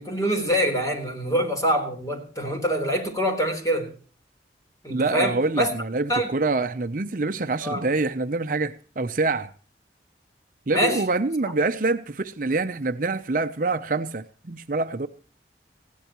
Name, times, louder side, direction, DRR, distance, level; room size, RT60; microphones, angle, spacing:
voice 1, 0.0-3.9 4.8-5.7 6.1-6.3 7.6-7.9 10.7-11.0, equal, 20° left, 3.8 m, -25 dB
voice 2, 4.9-9.5 10.7-15.1, right 3 dB, 50° right, 0.7 m, -26 dB
20.0 x 16.5 x 3.0 m
head